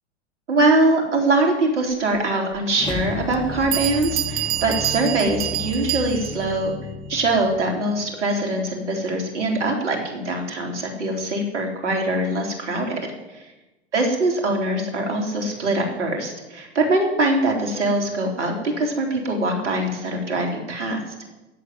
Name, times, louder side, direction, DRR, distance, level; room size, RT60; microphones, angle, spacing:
voice 1, 0.5-6.7 7.1-13.0 13.3-13.4 13.9-21.0, right 2 dB, 80° right, 2 dB, 3.9 m, -23 dB
Bell, 2.5-2.6 3.3-3.4 3.7-6.5, right 14 dB, 25° right, 0.4 m, -27 dB
sound 1, 2.7-8.1, left 3 dB, 15° left, 2.8 m, -34 dB
15.5 x 7.6 x 9.3 m, 1.1 s
hypercardioid pair, 95°, 35 cm